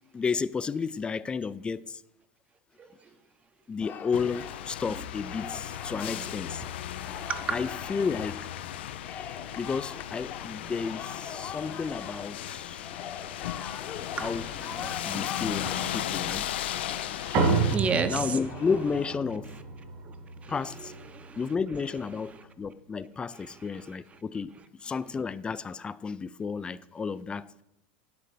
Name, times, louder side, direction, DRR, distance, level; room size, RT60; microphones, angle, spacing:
voice 1, 0.1-2.0 3.7-6.6 7.5-8.6 9.6-12.9 14.2-14.5 15.0-16.5 17.4-17.8 18.1-19.5 20.5-20.9 21.4-24.5 24.8-27.5, left 5 dB, 15° left, 0.3 m, -32 dB
voice 2, 2.8-3.1 5.9-6.3 7.3-7.6 14.2-18.4 20.1-20.2 20.4-21.4 22.3-22.4 23.3-23.5, right 5 dB, 25° right, 0.8 m, -36 dB
sound 1, 3.8-19.2, left 8 dB, 40° left, 0.9 m, -43 dB
sound 2, 4.1-17.8, left 11 dB, 85° left, 0.4 m, -36 dB
sound 3, 17.3-22.1, right 4 dB, 50° right, 2.2 m, -31 dB
10.0 x 3.8 x 6.7 m
supercardioid pair, 115°, 6 cm